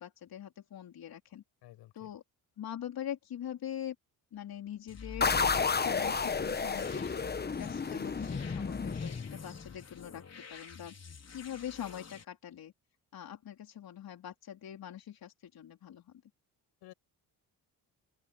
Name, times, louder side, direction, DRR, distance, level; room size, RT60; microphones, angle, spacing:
voice 1, 0.0-1.4 1.9-2.2 2.6-4.0 4.3-5.4 5.8-10.2 10.5-12.7 13.1-16.1, left 10 dB, 65° left, 3.5 m, -43 dB
voice 2, 1.6-2.1 16.8-16.9, left 15 dB, 90° left, 7.4 m, -53 dB
sound 1, 4.9-12.2, left 5 dB, 40° left, 4.5 m, -47 dB
sound 2, 5.2-9.7, left 5 dB, 25° left, 1.1 m, -32 dB
open air
cardioid pair, 85°, 39 cm